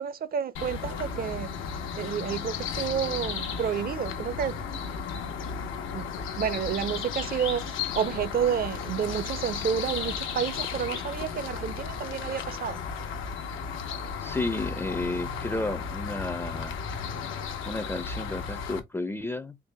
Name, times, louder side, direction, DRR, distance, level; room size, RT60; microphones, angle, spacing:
voice 1, 0.0-1.5 2.0-4.6 5.9-6.0 6.4-7.7 7.9-12.8, right 8 dB, 50° right, 0.6 m, -30 dB
sound 1, 0.6-18.8, left 6 dB, 80° left, 1.0 m, -34 dB
voice 2, 14.2-16.8 17.7-19.6, left 2 dB, 10° left, 0.5 m, -32 dB
4.6 x 2.2 x 3.3 m
cardioid pair, 90°, 20 cm